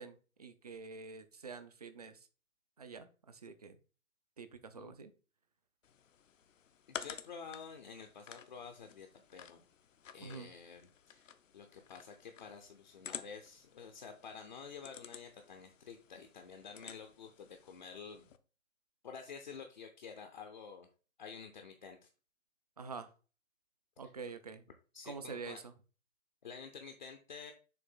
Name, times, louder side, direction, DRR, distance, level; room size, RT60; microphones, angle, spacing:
voice 1, 0.0-2.3 2.8-3.8 4.4-5.1 10.2-10.5 22.8-23.1 24.0-24.6 25.0-25.7, right 4 dB, 30° right, 10 dB, 0.5 m, -47 dB
sound 1, 5.8-18.4, left 8 dB, 65° left, 0.8 m, -52 dB
voice 2, 6.9-9.6 10.1-10.8 11.1-18.3 19.0-20.9 21.2-22.1 24.9-25.6 26.4-27.5, left 6 dB, 35° left, 4 dB, 0.7 m, -50 dB
6.9 x 2.9 x 5.5 m, 0.36 s
hypercardioid pair, 155°, 41 cm